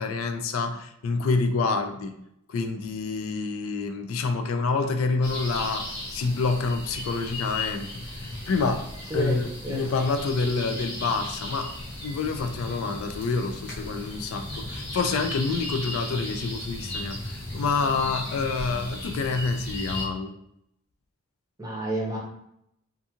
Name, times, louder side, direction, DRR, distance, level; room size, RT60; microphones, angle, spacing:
voice 1, 0.0-2.2 2.5-8.0 8.5-8.9 9.1-11.7 12.0-20.3, left 4 dB, 80° left, 7 dB, 0.3 m, -27 dB
sound 1, 5.2-20.1, left 1 dB, 55° left, 0.7 m, -36 dB
voice 2, 9.1-9.8 21.6-22.2, right 1 dB, 15° right, -3 dB, 0.6 m, -30 dB
2.5 x 2.4 x 2.8 m, 0.75 s
head